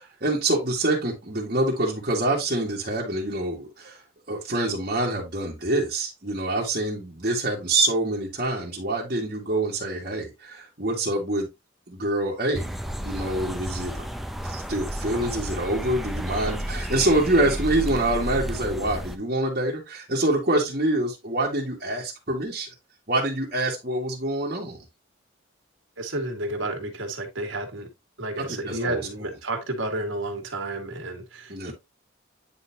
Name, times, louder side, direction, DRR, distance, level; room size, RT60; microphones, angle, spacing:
voice 1, 0.0-4.0 4.3-11.5 11.9-14.1 14.4-22.7 23.1-24.8 28.4-29.0 31.5-31.7, right 1 dB, 45° right, 2.0 m, -26 dB
sound 1, 12.5-19.2, equal, ahead, 0.5 m, -32 dB
voice 2, 26.0-27.9 28.2-31.7, right 2 dB, 85° right, 2.0 m, -31 dB
9.5 x 4.1 x 2.8 m
head